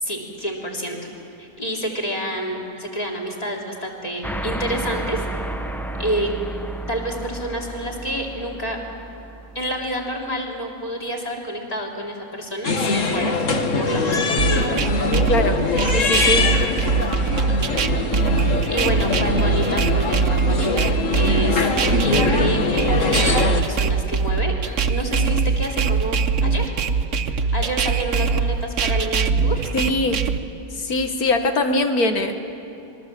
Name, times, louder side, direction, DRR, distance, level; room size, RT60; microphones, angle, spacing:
voice 1, 0.0-1.0 1.4-5.3 6.0-6.3 6.9-8.8 9.6-13.4 13.8-15.0 18.7-20.8 21.1-21.7 22.0-26.7 27.3-29.6, right 1 dB, 25° left, -1 dB, 3.5 m, -28 dB
sound 1, 4.2-10.0, right 2 dB, ahead, 0.5 m, -32 dB
sound 2, 12.6-23.6, left 3 dB, 55° left, 1.9 m, -22 dB
sound 3, 14.4-30.4, right 5 dB, 60° right, 1.2 m, -22 dB
voice 2, 15.3-15.6 15.9-16.5 29.7-30.2 30.8-32.3, left 2 dB, 80° left, 5 dB, 2.0 m, -21 dB
26.5 x 22.5 x 7.6 m, 2.8 s
omnidirectional pair, 1.6 m